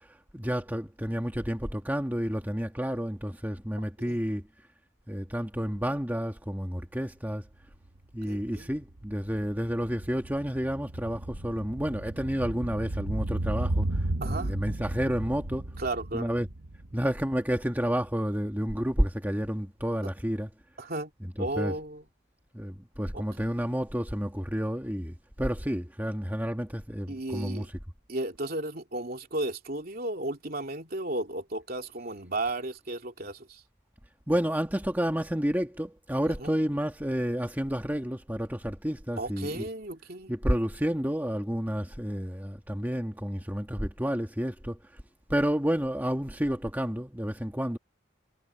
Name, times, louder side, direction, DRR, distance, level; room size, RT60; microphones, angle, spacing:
voice 1, 0.3-4.4 5.1-7.4 8.1-15.6 16.1-16.5 16.9-20.5 21.2-21.7 22.5-27.6 34.3-39.7 40.3-44.8 45.3-47.8, equal, 10° right, 1.6 m, -30 dB
sound 1, 7.6-18.0 18.3-18.4, right 1 dB, 90° right, 1.2 m, -35 dB
voice 2, 8.3-8.7 14.2-14.5 15.8-16.3 20.8-21.1 21.4-22.0 23.1-23.4 27.1-27.7 28.1-33.6 36.4-36.6 39.2-40.3, right 2 dB, 50° right, 3.0 m, -34 dB
head